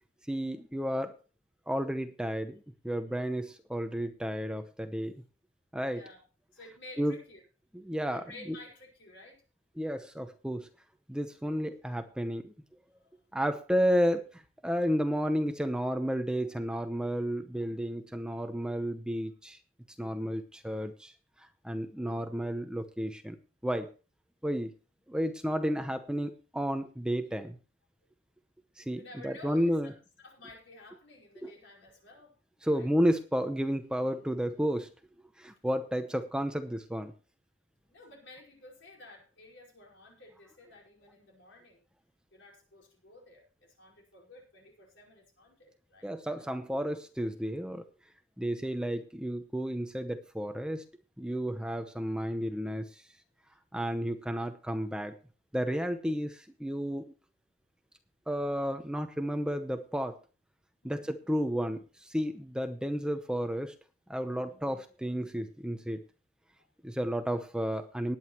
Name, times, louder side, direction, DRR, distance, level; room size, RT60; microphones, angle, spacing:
voice 1, 0.3-1.1 1.7-5.2 5.7-6.0 7.0-7.1 7.8-8.6 9.8-10.7 11.1-12.5 13.3-19.6 20.0-21.1 21.6-23.4 23.6-23.9 24.4-24.7 25.1-27.6 28.8-29.9 31.4-31.5 32.6-34.9 35.4-37.1 46.0-47.8 48.4-50.8 51.2-53.0 53.7-55.2 55.5-57.1 58.3-60.2 60.8-63.7 64.1-66.0 66.8-68.2, equal, 5° right, 7 dB, 0.8 m, -32 dB
voice 2, 5.9-6.2 6.5-7.4 8.1-9.4 13.0-13.2 28.8-32.3 32.7-32.9 35.5-35.6 37.9-41.8 42.3-46.1 46.4-46.5 60.8-61.1 64.3-64.6 66.6-66.7, left 2 dB, 75° left, -1 dB, 5.0 m, -53 dB
19.0 x 9.3 x 3.0 m, 0.35 s
head